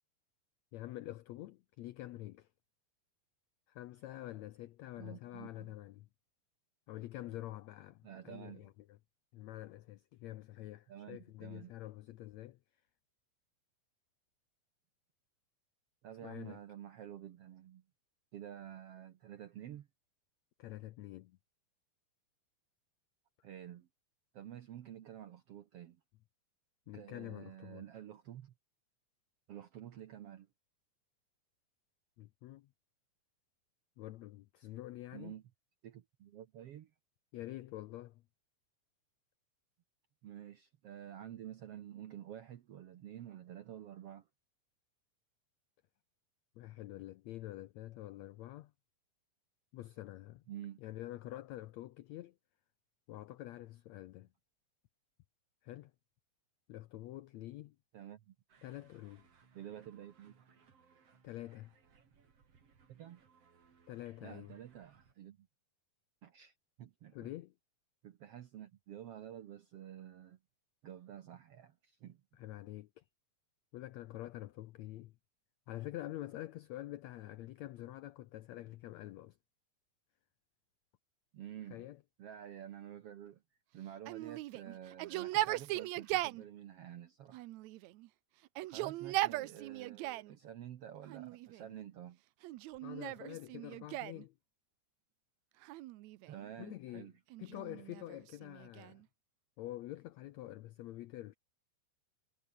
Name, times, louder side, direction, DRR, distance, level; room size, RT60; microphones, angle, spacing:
voice 1, 0.7-2.5 3.7-6.1 6.9-9.0 9.3-12.6 16.2-16.6 20.6-21.4 26.9-27.8 32.2-32.7 34.0-35.4 37.3-38.2 46.6-48.7 49.7-50.4 50.8-52.3 53.1-54.3 55.6-55.9 56.7-57.8 58.6-59.3 61.2-61.7 63.9-64.5 67.1-67.5 72.3-73.0 73.7-75.1 75.7-79.4 81.7-82.0 92.8-94.3 96.6-97.1 97.4-99.0 99.6-101.3, left 15 dB, 85° left, 1.6 m, -47 dB
voice 2, 5.0-5.7 8.0-8.7 10.9-11.7 16.0-17.8 18.3-19.9 23.4-23.9 24.3-26.0 26.9-28.5 29.5-30.5 35.1-35.4 35.8-36.9 40.2-44.3 50.5-50.8 57.9-58.3 59.5-60.3 62.9-63.2 64.2-65.5 66.2-67.2 68.0-70.4 70.8-72.2 81.3-81.9 82.2-83.4 83.7-87.5 88.7-92.2 96.3-97.1, right 11 dB, 70° right, 1.4 m, -50 dB
sound 1, 58.5-65.1, right 6 dB, 45° right, 3.8 m, -67 dB
Yell, 84.1-86.4 87.3-88.1 88.5-90.3 91.1-91.7 92.4-94.2 95.6-96.5 97.3-99.0, right 17 dB, 85° right, 1.6 m, -39 dB
omnidirectional pair, 4.0 m